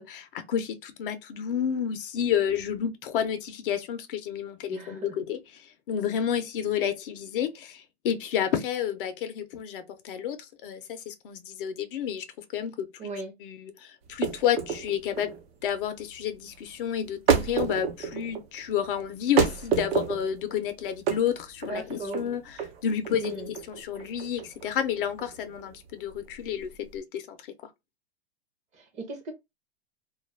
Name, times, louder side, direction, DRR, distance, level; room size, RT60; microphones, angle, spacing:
voice 1, 0.0-12.2 12.5-12.9 13.4-27.5, left 9 dB, 55° left, 0.5 m, -30 dB
voice 2, 4.7-5.1 13.0-13.3 21.7-22.2 23.1-23.5 28.7-29.3, right 2 dB, 20° right, 0.6 m, -37 dB
sound 1, 14.0-27.0, right 7 dB, 65° right, 0.8 m, -30 dB
2.3 x 2.1 x 3.1 m
hypercardioid pair, 135°, 34 cm